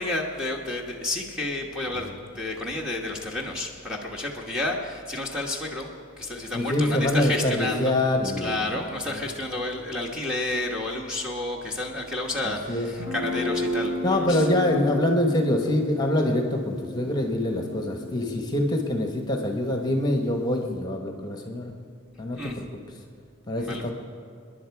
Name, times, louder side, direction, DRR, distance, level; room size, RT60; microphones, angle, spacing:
voice 1, 0.0-2.1 2.3-7.9 8.4-14.5 22.3-22.6 23.6-23.9, left 2 dB, 5° right, -1 dB, 1.2 m, -31 dB
voice 2, 6.5-8.6 9.1-9.2 12.4-12.9 14.0-21.7 22.2-22.7 23.5-23.9, left 1 dB, 20° left, 3 dB, 1.3 m, -25 dB
Guitar, 13.0-20.7, left 1 dB, 65° right, 3.5 m, -34 dB
26.5 x 10.5 x 4.7 m, 2.3 s
head